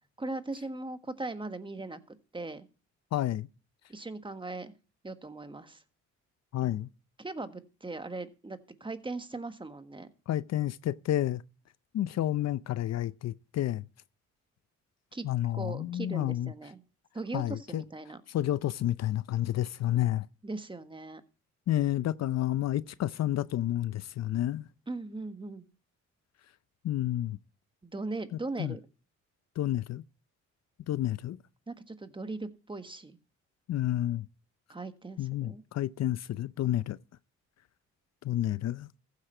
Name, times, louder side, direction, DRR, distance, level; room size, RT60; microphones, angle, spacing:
voice 1, 0.2-2.7 3.9-4.7 5.0-5.8 7.2-10.1 15.1-15.2 15.5-16.8 17.1-18.2 20.4-21.2 24.9-25.6 27.8-28.8 31.7-33.1 34.7-35.6, right 2 dB, 15° right, 1.5 m, -39 dB
voice 2, 3.1-3.5 6.5-6.9 10.3-11.4 11.9-13.8 15.2-16.5 17.3-17.8 18.3-20.3 21.7-24.7 26.8-27.4 28.6-28.7 29.6-30.0 30.9-31.4 33.7-34.3 35.2-37.0 38.2-38.9, left 13 dB, 60° left, 0.6 m, -30 dB
15.0 x 8.4 x 4.4 m
cardioid pair, 90°, 30 cm